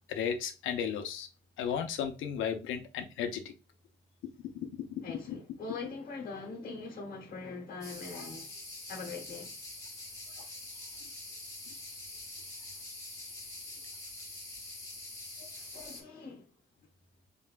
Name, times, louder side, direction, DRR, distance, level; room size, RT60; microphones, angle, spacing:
voice 1, 0.1-1.3 1.6-3.4 4.9-5.4, left 8 dB, 85° left, 0.7 m, -34 dB
voice 2, 5.0-8.6 8.9-9.5 10.4-10.5 10.8-10.9 15.4-16.5, left 4 dB, 45° left, 1.1 m, -43 dB
sound 1, 7.8-16.0, left 2 dB, 15° left, 1.7 m, -45 dB
4.1 x 3.4 x 2.4 m
cardioid pair, 90°, 20 cm